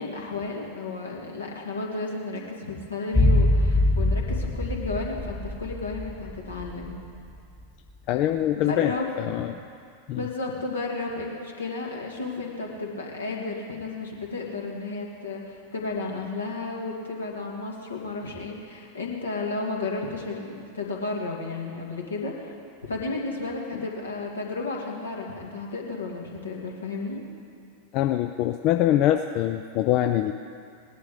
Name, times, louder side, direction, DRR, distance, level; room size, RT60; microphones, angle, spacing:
voice 1, 0.0-7.0 8.5-9.1 10.1-22.6 22.9-27.2, left 3 dB, 75° left, -1 dB, 2.3 m, -33 dB
sound 1, 3.1-7.4 7.6-7.7, left 1 dB, 5° left, 1.3 m, -24 dB
voice 2, 8.1-9.6 10.1-10.2 27.9-30.3, left 12 dB, 40° left, 7 dB, 0.5 m, -24 dB
19.0 x 11.0 x 5.0 m, 2.4 s
figure-of-eight pair, 90°, 0 cm